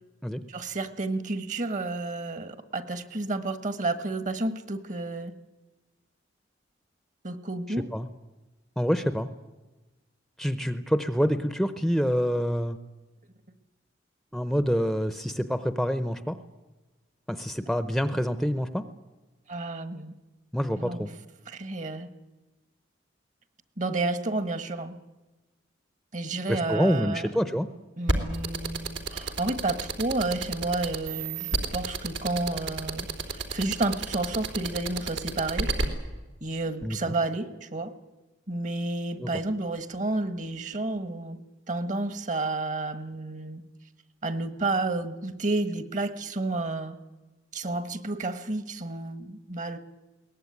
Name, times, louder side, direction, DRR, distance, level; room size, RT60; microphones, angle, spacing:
voice 1, 0.5-5.3 7.2-7.9 19.5-20.1 20.8-21.1 21.5-22.1 23.8-24.9 26.1-27.3 28.0-35.7 36.4-37.9 38.5-41.4 41.7-43.6 44.2-47.0 47.5-49.8, right 2 dB, 40° right, 12 dB, 1.4 m, -31 dB
voice 2, 8.8-9.3 10.4-12.8 14.3-16.4 17.3-18.8 20.5-21.1 26.5-27.7 36.8-37.1 39.2-39.3, equal, ahead, 11 dB, 0.7 m, -27 dB
sound 1, 28.1-35.8, right 3 dB, 80° right, 3.4 m, -29 dB
22.0 x 18.5 x 9.6 m, 1.2 s
head